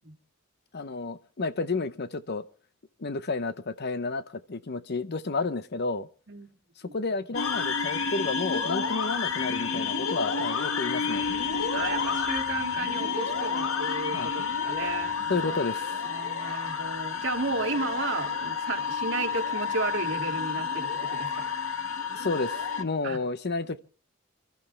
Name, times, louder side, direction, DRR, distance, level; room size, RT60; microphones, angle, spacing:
voice 1, 0.7-2.5 3.0-4.2 4.5-6.1 6.9-11.2 14.1-14.3 15.3-16.0 22.1-23.8, left 3 dB, 50° left, 0.7 m, -31 dB
sound 1, 7.3-22.8, left 5 dB, 70° left, 1.2 m, -30 dB
voice 2, 11.7-15.6 16.0-21.5 23.0-23.2, right 2 dB, 60° right, 2.2 m, -33 dB
27.5 x 13.0 x 3.2 m
head